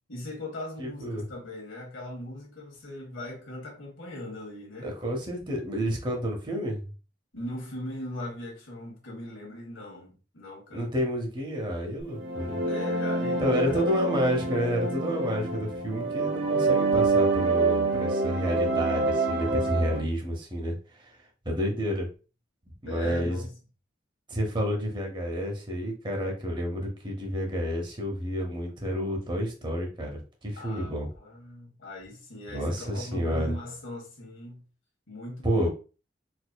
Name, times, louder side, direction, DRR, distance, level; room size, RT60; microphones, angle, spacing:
voice 1, 0.1-4.9 7.3-11.0 12.6-13.8 22.9-23.5 30.6-34.6 35.1-35.7, left 1 dB, 80° left, 1.5 m, -39 dB
voice 2, 0.8-1.3 4.8-6.9 10.7-12.6 13.4-21.1 21.5-22.1 22.7-23.4 24.3-31.1 32.5-33.5 35.4-35.7, equal, 25° right, 0.7 m, -30 dB
sound 1, 12.1-20.0, right 3 dB, 70° right, 1.0 m, -26 dB
4.2 x 2.7 x 2.2 m
head